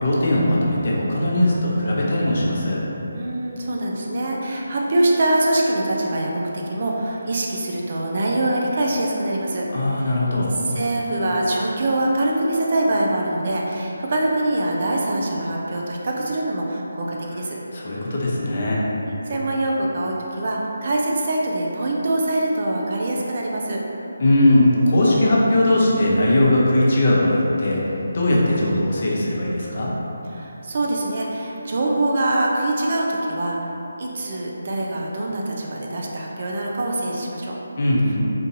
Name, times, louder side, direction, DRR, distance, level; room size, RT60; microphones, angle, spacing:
voice 1, 0.0-2.8 9.7-10.5 17.7-18.9 24.2-29.9 37.8-38.2, left 1 dB, 45° left, -5 dB, 0.7 m, -19 dB
voice 2, 3.1-10.2 10.5-17.6 19.3-23.8 30.3-33.7 34.0-37.5, right 1 dB, 45° right, -2 dB, 0.4 m, -24 dB
3.7 x 2.6 x 2.6 m, 3.0 s
figure-of-eight pair, 160°, 0 cm